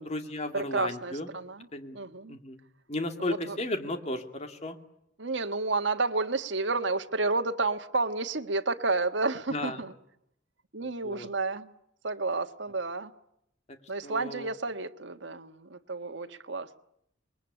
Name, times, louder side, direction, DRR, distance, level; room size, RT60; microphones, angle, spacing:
voice 1, 0.0-1.3 1.7-2.0 2.3-2.6 2.9-4.8 9.5-9.8 11.0-11.3 14.0-14.5, left 1 dB, 35° left, 6 dB, 2.5 m, -34 dB
voice 2, 0.5-1.7 1.9-2.4 3.3-3.6 5.2-9.9 10.7-11.7 12.0-13.1 13.9-16.8, right 3 dB, 75° right, 6 dB, 1.5 m, -31 dB
26.5 x 22.0 x 9.9 m, 0.76 s
head